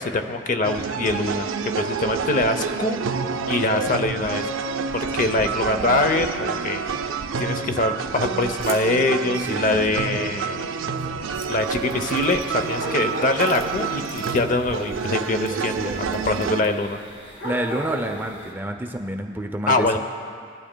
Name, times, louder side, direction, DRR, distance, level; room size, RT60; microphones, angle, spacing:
voice 1, 0.0-1.5 1.8-3.0 3.5-7.0 7.4-10.6 11.5-17.0 19.7-20.0, left 2 dB, 40° left, 7 dB, 0.6 m, -24 dB
sound 1, 0.6-16.6, right 5 dB, 85° right, 0.4 m, -28 dB
voice 2, 5.2-5.5 9.4-10.2 15.5-16.5 17.3-20.0, right 1 dB, 10° right, 4 dB, 0.4 m, -30 dB
sound 2, 8.6-8.8 9.2-10.1 10.6-10.7 10.9-11.5 11.9-12.6 13.2-13.6 14.1-14.9 15.2-15.5 16.0-16.7, equal, 15° left, 1.3 m, -42 dB
sound 3, 11.6-18.5, equal, 75° left, 2.1 m, -36 dB
19.5 x 12.0 x 2.2 m, 2.3 s
head